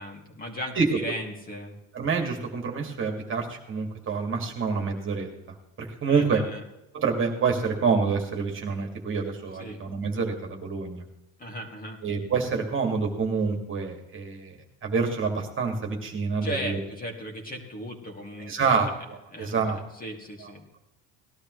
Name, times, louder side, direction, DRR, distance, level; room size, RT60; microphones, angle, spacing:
voice 1, 0.0-1.7 6.1-6.6 9.6-9.8 11.4-12.0 16.4-18.8 19.3-20.6, equal, 25° left, 1 dB, 2.5 m, -37 dB
voice 2, 1.9-5.3 5.8-6.4 6.9-11.0 12.0-14.5 14.8-16.8 18.5-19.8 20.4-20.5, right 5 dB, 35° right, 2 dB, 2.2 m, -27 dB
19.0 x 12.0 x 3.2 m, 0.92 s
cardioid pair, 120°, 36 cm